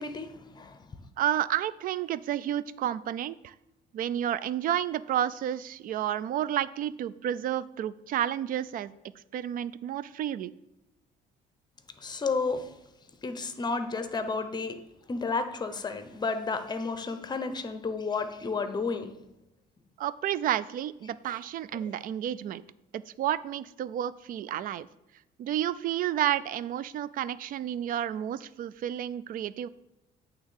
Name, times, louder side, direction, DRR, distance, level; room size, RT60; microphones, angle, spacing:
voice 1, 0.0-1.1 12.0-12.8 13.2-14.8 15.1-19.1 21.3-21.4 21.7-21.9, left 4 dB, 25° left, 10 dB, 0.8 m, -32 dB
voice 2, 1.2-3.5 3.9-8.9 9.3-10.5 20.0-22.6 22.9-24.9 25.4-29.7, right 11 dB, 55° right, 17 dB, 0.4 m, -31 dB
8.9 x 3.5 x 6.4 m, 0.92 s
cardioid pair, 110°, 17 cm